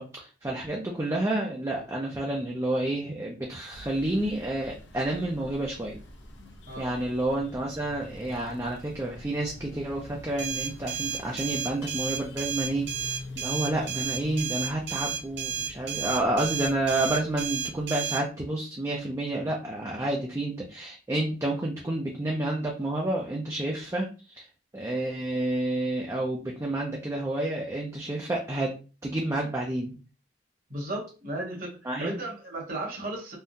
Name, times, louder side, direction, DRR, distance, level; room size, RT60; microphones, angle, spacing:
voice 1, 0.0-6.0 6.8-24.5 24.7-28.7 29.0-29.9 31.8-32.2, right 1 dB, 15° right, -1 dB, 0.4 m, -30 dB
sound 1, 3.7-17.9, left 1 dB, 85° left, 0.6 m, -45 dB
sound 2, 10.4-18.2, right 7 dB, 75° right, 0.5 m, -32 dB
voice 2, 30.7-33.4, right 1 dB, 55° right, -1 dB, 1.3 m, -35 dB
3.5 x 2.2 x 2.6 m, 0.35 s
head